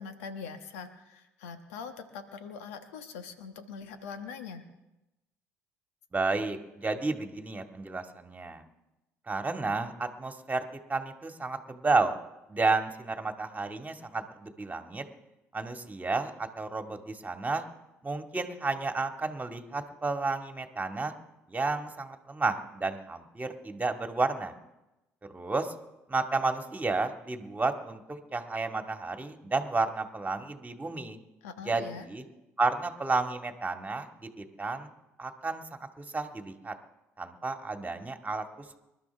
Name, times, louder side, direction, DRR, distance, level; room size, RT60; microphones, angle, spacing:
voice 1, 0.0-4.6 31.4-32.1, left 5 dB, 80° left, 8 dB, 1.3 m, -42 dB
voice 2, 6.1-8.6 9.3-10.6 10.9-12.2 12.5-15.0 15.5-17.6 18.0-21.1 21.5-24.5 25.3-25.7 26.1-31.2 31.7-32.2 32.6-34.9 35.2-35.6 36.0-36.7 37.2-38.4, right 3 dB, 20° right, 5 dB, 2.0 m, -31 dB
27.0 x 12.5 x 3.5 m, 0.97 s
hypercardioid pair, 55°, 7 cm